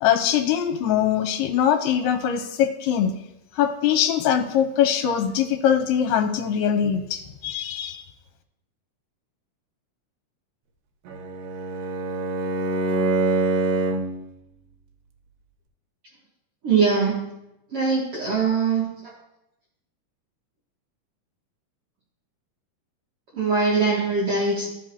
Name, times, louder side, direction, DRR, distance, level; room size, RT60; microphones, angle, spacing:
voice 1, 0.0-3.1 3.6-8.0, left 9 dB, 85° left, 6 dB, 2.2 m, -22 dB
Bowed string instrument, 11.1-14.2, right 2 dB, 85° right, 2.4 m, -25 dB
voice 2, 16.6-17.2 17.7-18.9 23.3-24.7, right 4 dB, 55° right, -5 dB, 1.8 m, -21 dB
13.5 x 5.2 x 2.8 m, 0.87 s
omnidirectional pair, 3.9 m